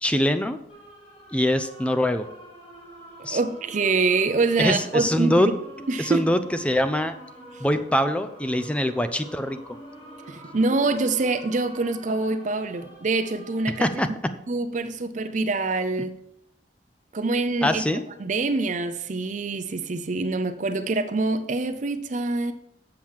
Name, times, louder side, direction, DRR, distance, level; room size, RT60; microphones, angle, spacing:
voice 1, 0.0-0.6 1.3-2.3 3.2-3.4 4.6-5.5 6.0-6.4 6.6-7.1 7.6-9.6 13.8-14.1 16.0-16.1 17.6-18.0, left 1 dB, 5° left, 0.5 m, -23 dB
sound 1, 0.7-13.9, right 1 dB, 35° left, 3.7 m, -46 dB
voice 2, 3.3-5.4 5.9-6.3 10.2-13.9 14.5-16.1 17.1-17.9 18.2-22.5, right 3 dB, 45° right, 0.5 m, -25 dB
7.4 x 7.3 x 4.7 m
head